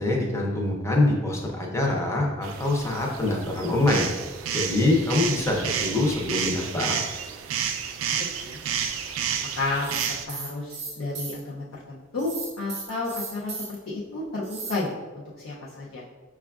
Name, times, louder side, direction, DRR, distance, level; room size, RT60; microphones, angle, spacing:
voice 1, 0.0-4.0 4.5-7.0, left 2 dB, 15° left, -1 dB, 0.5 m, -24 dB
sound 1, 2.4-10.2, right 8 dB, 80° right, 0.3 m, -31 dB
voice 2, 8.0-8.6 9.6-9.9 10.3-16.0, left 3 dB, 80° left, -6 dB, 0.5 m, -32 dB
sound 2, 9.7-11.4 12.2-13.8 14.4-14.7, right 4 dB, 35° right, 0.6 m, -36 dB
5.9 x 2.3 x 2.3 m, 1.4 s
head